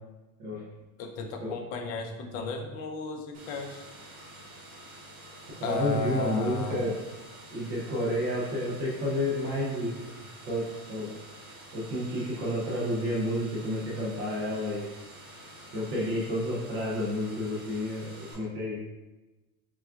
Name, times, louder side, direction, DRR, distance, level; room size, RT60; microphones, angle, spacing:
voice 1, 1.0-3.8 5.6-6.8, left 4 dB, 75° left, 4 dB, 0.7 m, -34 dB
sound 1, 3.3-18.3, right 1 dB, 60° right, 1.5 m, -48 dB
voice 2, 5.6-7.0 7.5-10.0 10.5-11.1 11.7-14.9 15.7-18.8, equal, 30° right, -4 dB, 0.4 m, -30 dB
6.0 x 2.3 x 2.3 m, 1.1 s
cardioid pair, 175°, 49 cm